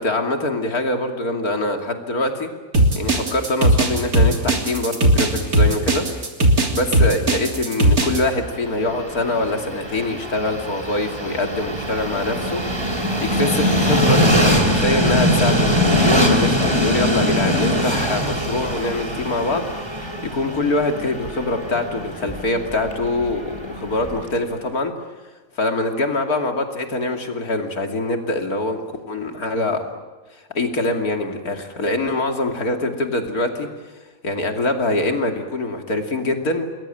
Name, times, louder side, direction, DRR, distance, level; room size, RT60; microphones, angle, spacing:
voice 1, 0.0-2.5 3.0-6.0 6.7-12.6 12.9-24.9 25.6-29.8 30.5-33.7 34.2-36.7, left 2 dB, 85° left, 4 dB, 3.2 m, -24 dB
sound 1, 2.7-8.2, right 1 dB, 90° right, 3.7 m, -17 dB
Train, 8.4-24.4, equal, 20° right, 3.4 m, -22 dB
28.0 x 21.0 x 9.2 m, 1.3 s
omnidirectional pair, 1.5 m